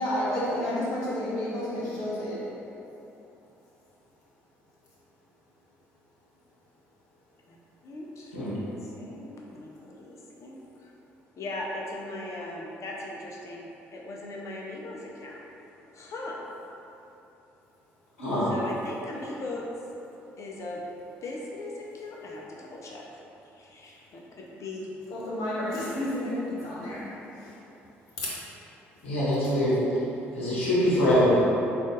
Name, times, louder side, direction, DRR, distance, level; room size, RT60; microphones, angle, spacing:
voice 1, 0.0-2.4 25.1-27.6, left 1 dB, 65° left, -7 dB, 1.1 m, -31 dB
voice 2, 7.8-8.4 8.8-10.9 11.4-15.4 15.9-16.4 18.5-19.7 20.4-20.8 21.2-23.2 23.5-24.9, left 2 dB, 45° left, -2 dB, 0.5 m, -39 dB
voice 3, 29.0-29.8 30.3-31.4, left 1 dB, 85° left, -9 dB, 0.8 m, -23 dB
3.7 x 2.4 x 3.8 m, 3.0 s
hypercardioid pair, 50°, 7 cm